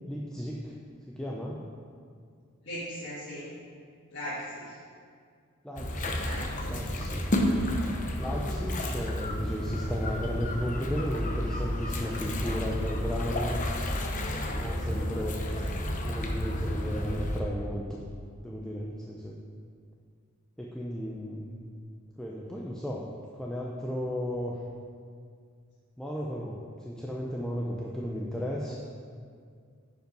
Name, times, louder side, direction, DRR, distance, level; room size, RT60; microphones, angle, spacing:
voice 1, 0.1-0.8 1.1-1.7 5.6-7.3 8.2-13.6 14.5-15.4 16.0-18.0 18.4-19.4 20.6-21.7 22.2-23.1 23.4-24.6 26.0-28.8, equal, 5° left, -4 dB, 0.6 m, -35 dB
voice 2, 2.6-3.5 4.1-4.8 6.2-7.0, equal, 55° left, -11 dB, 1.9 m, -39 dB
sound 1, 5.8-17.4, left 1 dB, 35° left, 0.8 m, -31 dB
9.5 x 5.4 x 5.3 m, 2.2 s
head